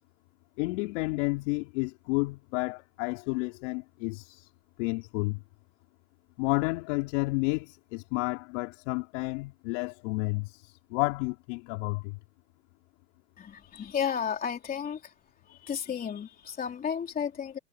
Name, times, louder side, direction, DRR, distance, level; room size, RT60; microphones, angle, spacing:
voice 1, 0.6-4.5 4.8-5.4 6.4-12.2, left 27 dB, 50° left, 4.3 m, -31 dB
voice 2, 13.4-15.1 15.5-17.6, left 7 dB, 20° left, 3.1 m, -33 dB
hypercardioid pair, 125°, 45 cm